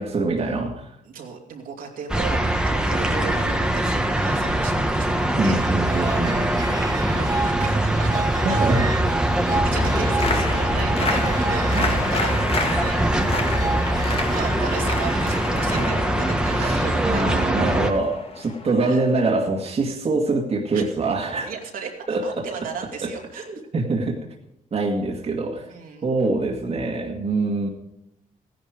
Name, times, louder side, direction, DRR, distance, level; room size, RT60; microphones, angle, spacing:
voice 1, 0.0-0.9 5.4-6.4 8.4-8.9 11.7-11.9 15.7-15.9 16.5-21.5 22.1-22.5 23.5-24.2 24.7-25.7 26.0-27.7, right 3 dB, 45° right, 0 dB, 2.1 m, -24 dB
voice 2, 1.0-5.6 6.2-8.8 9.3-17.5 18.9-19.0 20.7-20.8 21.4-23.5 25.7-26.1, right 6 dB, 75° right, 0 dB, 2.8 m, -36 dB
sound 1, 2.1-17.9, right 1 dB, 5° right, 1.5 m, -22 dB
sound 2, 5.6-15.4, right 2 dB, 25° right, 2.3 m, -31 dB
sound 3, 9.7-19.4, left 4 dB, 40° left, 1.9 m, -31 dB
15.5 x 11.0 x 5.0 m, 0.82 s
cardioid pair, 85°, 15 cm